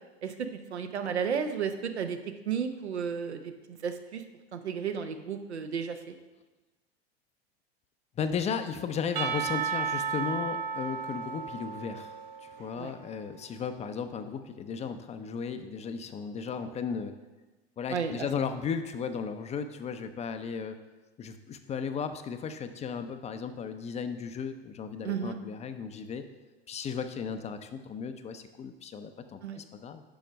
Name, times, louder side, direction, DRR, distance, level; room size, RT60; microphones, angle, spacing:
voice 1, 0.2-2.2 2.5-4.2 4.5-6.2 12.8-12.9 17.9-18.3 25.0-25.4 29.4-29.6, right 7 dB, 90° right, 7 dB, 0.8 m, -33 dB
voice 2, 8.2-17.1 17.8-20.8 21.2-26.2 26.7-30.0, left 6 dB, 20° left, 9 dB, 0.5 m, -35 dB
Percussion / Church bell, 9.2-13.1, right 6 dB, 45° right, 0.7 m, -34 dB
6.9 x 5.2 x 5.1 m, 1.2 s
hypercardioid pair, 95°, 32 cm